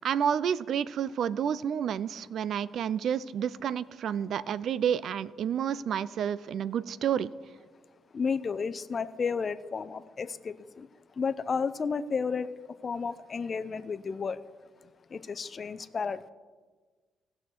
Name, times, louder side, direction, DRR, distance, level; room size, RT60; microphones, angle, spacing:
voice 1, 0.0-7.3, right 8 dB, 65° right, 18 dB, 0.4 m, -30 dB
voice 2, 8.1-10.9 11.2-12.5 12.8-14.4 15.1-16.2, left 5 dB, 40° left, 13 dB, 0.6 m, -32 dB
18.5 x 6.4 x 4.6 m, 1.4 s
cardioid pair, 90°, 0 cm